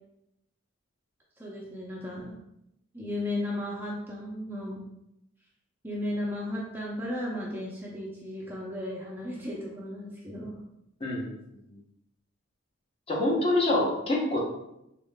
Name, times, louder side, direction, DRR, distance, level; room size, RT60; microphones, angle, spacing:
voice 1, 1.4-2.4 2.9-4.8 5.8-10.6, left 1 dB, 10° right, -4 dB, 0.5 m, -35 dB
voice 2, 11.0-11.3 13.1-14.4, left 2 dB, 25° left, -3 dB, 0.7 m, -25 dB
3.5 x 3.4 x 2.2 m, 0.84 s
head